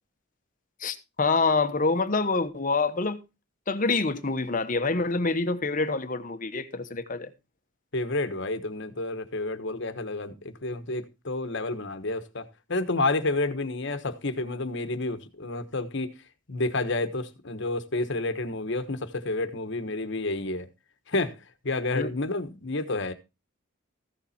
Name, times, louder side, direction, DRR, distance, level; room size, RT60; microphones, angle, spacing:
voice 1, 0.8-3.2 3.7-7.3 21.9-22.1, left 3 dB, 35° left, 1.0 m, -26 dB
voice 2, 7.9-16.1 16.5-20.7 21.1-21.3 21.6-23.1, left 2 dB, 55° left, 1.2 m, -30 dB
15.0 x 7.3 x 4.2 m
head